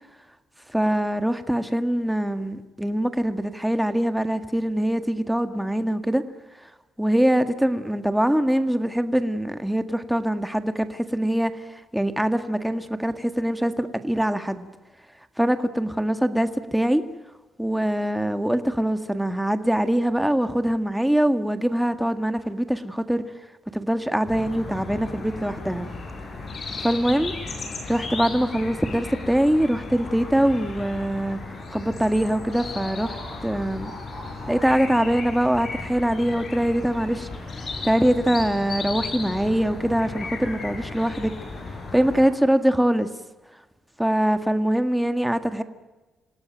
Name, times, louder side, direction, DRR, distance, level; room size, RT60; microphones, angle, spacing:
voice 1, 0.7-6.2 7.0-11.5 11.9-14.7 15.4-17.0 17.6-23.2 23.7-25.9 26.8-27.3 27.9-31.4 31.7-33.2 33.4-33.9 34.5-37.3 37.8-41.3 41.9-43.1 44.0-45.6, equal, 5° right, 9 dB, 1.7 m, -23 dB
sound 1, 24.2-42.3, left 3 dB, 45° left, 7.5 m, -35 dB
27.5 x 17.5 x 9.1 m, 1.2 s
cardioid pair, 100°, 0 cm